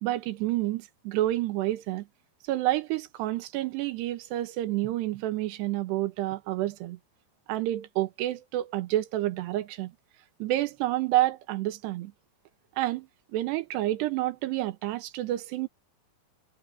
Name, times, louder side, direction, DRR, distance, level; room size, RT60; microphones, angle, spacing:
voice 1, 0.0-2.0 2.4-7.0 7.5-9.9 10.4-12.1 12.8-15.7, right 15 dB, 85° right, 3.2 m, -29 dB
omnidirectional pair, 4.8 m